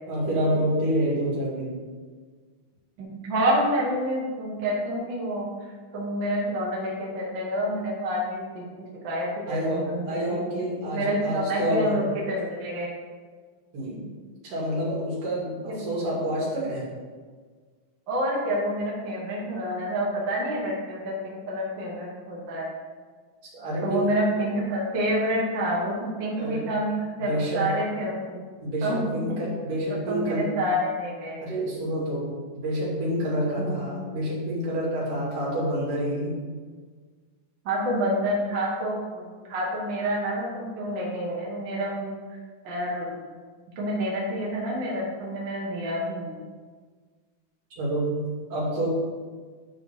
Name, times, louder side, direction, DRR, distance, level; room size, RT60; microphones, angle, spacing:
voice 1, 0.1-1.8 9.5-12.0 13.7-14.1 14.4-16.8 23.4-24.1 26.4-26.7 27.3-27.7 28.6-30.5 31.4-32.3 32.6-36.4 47.7-48.2 48.5-48.9, right 1 dB, 75° right, -5 dB, 4.0 m, -28 dB
voice 2, 3.0-8.6 9.0-12.9 15.7-15.8 18.1-22.7 23.8-28.4 28.8-29.2 30.1-31.4 33.6-33.8 37.6-42.4 42.6-43.2 43.8-46.4, equal, 40° right, -4 dB, 2.0 m, -28 dB
11.0 x 3.8 x 5.7 m, 1.5 s
omnidirectional pair, 3.7 m